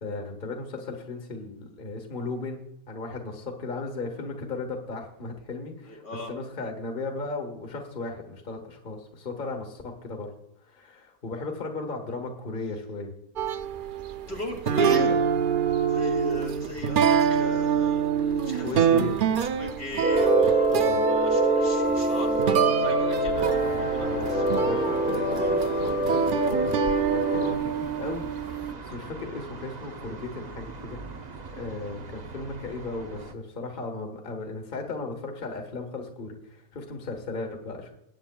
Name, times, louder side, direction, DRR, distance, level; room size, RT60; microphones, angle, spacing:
voice 1, 0.0-6.0 6.3-10.3 10.7-13.1 18.4-19.4 20.7-21.1 24.0-26.8 27.1-31.2 31.5-37.9, left 3 dB, 35° left, 3 dB, 1.5 m, -36 dB
voice 2, 5.8-6.3 14.3-15.2 15.9-24.4, left 1 dB, 75° left, 1 dB, 3.0 m, -37 dB
sound 1, 13.4-28.7, right 7 dB, 70° right, 0.4 m, -26 dB
sound 2, 20.0-27.6, right 2 dB, 5° right, 0.8 m, -24 dB
sound 3, 23.3-33.3, right 4 dB, 40° right, 0.7 m, -41 dB
20.0 x 9.1 x 2.3 m, 0.81 s
omnidirectional pair, 1.5 m